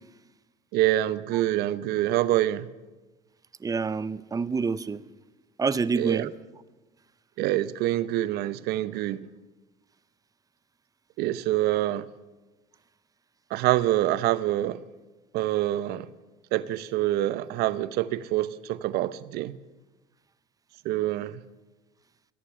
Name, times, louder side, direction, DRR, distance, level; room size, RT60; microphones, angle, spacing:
voice 1, 0.7-2.7 6.0-6.3 7.4-9.2 11.2-12.1 13.5-14.8 15.3-16.1 16.5-19.6 20.8-21.4, right 14 dB, 75° right, 0.8 m, -26 dB
voice 2, 3.6-5.0 5.6-6.3, right 5 dB, 20° right, 0.6 m, -27 dB
17.0 x 7.0 x 9.8 m
supercardioid pair, 100°, 17 cm